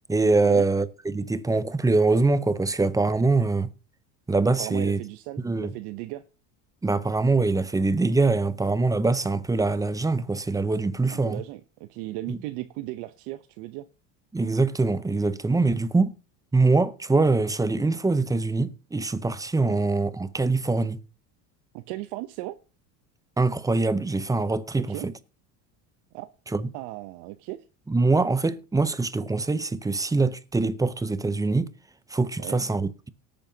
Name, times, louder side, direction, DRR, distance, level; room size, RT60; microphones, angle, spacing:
voice 1, 0.1-3.7 4.3-5.0 5.4-5.7 6.8-11.4 12.3-12.4 14.3-16.1 16.5-21.0 23.4-25.1 26.5-26.7 27.9-31.7 32.1-33.1, right 3 dB, 10° right, 0.7 m, -23 dB
voice 2, 4.6-6.2 11.1-13.9 19.7-19.8 21.7-22.6 24.8-25.1 26.1-26.3 26.7-27.6 32.4-32.7, right 17 dB, 70° right, 0.9 m, -36 dB
18.0 x 8.8 x 2.8 m
supercardioid pair, 105°, 41 cm